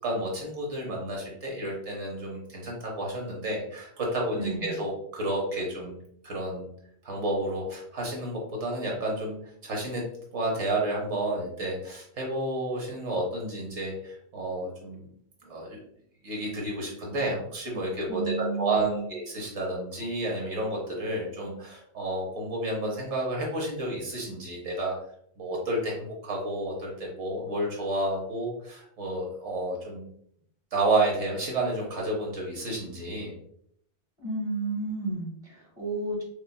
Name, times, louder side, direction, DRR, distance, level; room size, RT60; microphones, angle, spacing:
voice 1, 0.0-6.0 6.2-6.7 7.0-9.4 9.6-10.0 10.3-15.1 15.5-15.8 16.2-24.9 25.4-30.1 30.7-33.4, right 1 dB, 85° right, -2 dB, 1.2 m, -31 dB
voice 2, 4.3-4.7 18.1-19.1 34.2-36.2, right 3 dB, 30° right, -3 dB, 1.6 m, -32 dB
4.9 x 2.3 x 2.2 m, 0.69 s
omnidirectional pair, 1.1 m